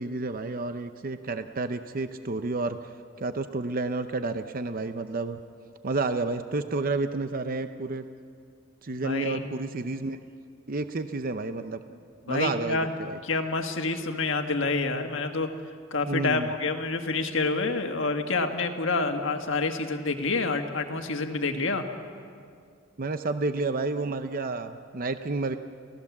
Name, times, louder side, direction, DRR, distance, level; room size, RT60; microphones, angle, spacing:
voice 1, 0.0-2.9 3.2-5.4 5.8-8.0 8.8-10.2 10.7-12.0 12.3-13.2 16.1-16.5 23.0-25.6, right 3 dB, 45° right, 9 dB, 0.7 m, -30 dB
voice 2, 8.9-9.4 12.2-12.9 13.2-15.5 15.9-21.8, left 3 dB, 65° left, 5 dB, 1.7 m, -28 dB
29.5 x 16.0 x 7.3 m, 2.3 s
head